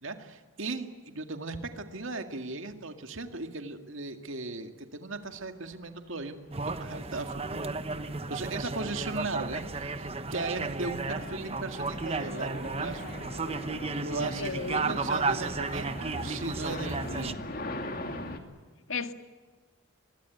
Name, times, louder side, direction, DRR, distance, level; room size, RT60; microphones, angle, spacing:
voice 1, 0.0-6.4 6.7-7.7 8.3-13.0 13.9-17.5, right 3 dB, 70° right, 6 dB, 2.1 m, -37 dB
sound 1, 5.4-5.6 6.1-18.4, left 1 dB, 45° left, 2.6 m, -42 dB
sound 2, 6.5-17.3, right 3 dB, 30° right, 1.0 m, -34 dB
voice 2, 14.1-14.9 18.9-19.1, left 4 dB, 70° left, 8 dB, 1.8 m, -35 dB
24.0 x 22.0 x 9.2 m, 1.4 s
head